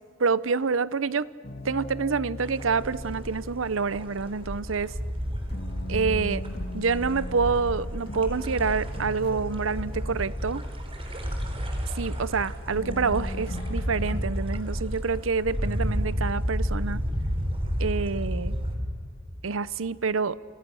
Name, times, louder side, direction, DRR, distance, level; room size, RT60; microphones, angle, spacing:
voice 1, 0.2-1.3 1.6-4.9 5.9-6.5 6.7-10.6 12.0-17.0 17.8-18.6 19.4-20.4, right 5 dB, 80° right, 18 dB, 0.7 m, -27 dB
sound 1, 1.4-14.3, left 1 dB, 55° left, 2.5 m, -41 dB
sound 2, 2.4-18.7, equal, 30° right, 3.9 m, -31 dB
28.5 x 28.0 x 6.3 m, 2.1 s
head